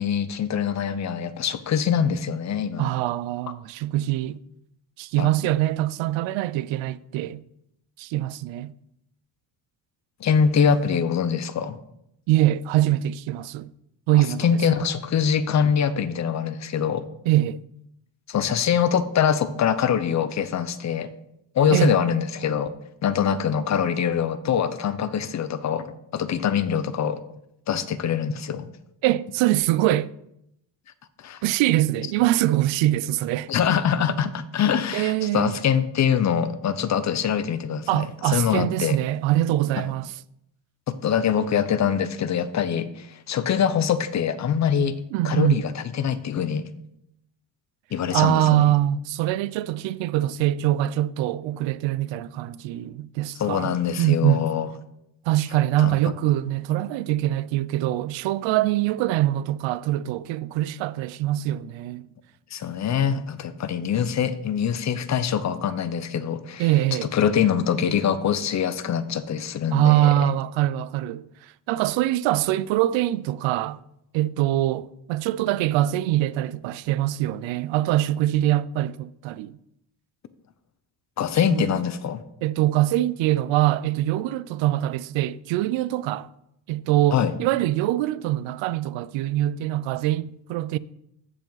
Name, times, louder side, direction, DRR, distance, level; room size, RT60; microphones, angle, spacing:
voice 1, 0.0-2.9 5.2-5.3 10.2-11.8 14.1-17.1 18.3-21.1 21.5-22.7 23.0-25.9 26.1-27.2 27.7-28.7 31.2-31.4 33.5-39.0 41.0-45.0 45.2-46.7 47.9-48.7 53.4-54.7 55.8-56.0 62.5-70.3 81.2-82.2 87.1-87.3, left 8 dB, 40° left, 0.7 m, -24 dB
voice 2, 2.8-4.4 5.0-7.4 8.0-8.7 12.3-13.7 14.1-14.8 17.3-17.6 21.7-21.9 29.0-30.1 31.4-33.5 34.9-35.6 37.9-40.1 45.1-45.6 48.1-54.5 55.3-62.1 66.6-67.1 69.7-73.8 74.1-79.6 81.5-81.7 82.4-86.3 86.7-90.8, right 14 dB, 80° right, 0.5 m, -23 dB
14.5 x 4.9 x 3.9 m
cardioid pair, 130°, 45 cm